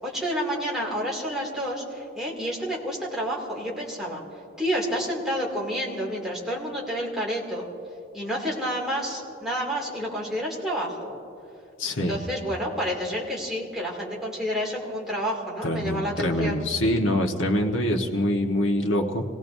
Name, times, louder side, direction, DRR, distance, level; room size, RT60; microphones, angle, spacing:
voice 1, 0.0-4.2 4.6-7.6 8.1-11.1 12.0-16.6, equal, ahead, -5 dB, 2.6 m, -29 dB
voice 2, 11.8-12.2 15.6-19.2, left 1 dB, 85° left, 2 dB, 1.3 m, -24 dB
27.5 x 18.0 x 2.7 m, 2.7 s
head